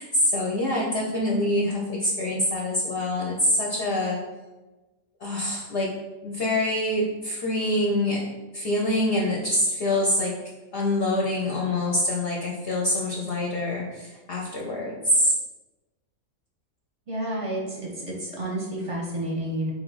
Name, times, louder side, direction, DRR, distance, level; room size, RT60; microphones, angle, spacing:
voice 1, 0.0-4.2 5.2-5.9 6.2-8.2 8.5-10.3 10.7-15.3, left 1 dB, 55° left, -3 dB, 0.7 m, -25 dB
voice 2, 17.1-19.7, right 1 dB, 30° right, -3 dB, 0.7 m, -30 dB
3.4 x 2.9 x 3.9 m, 1.1 s
omnidirectional pair, 1.5 m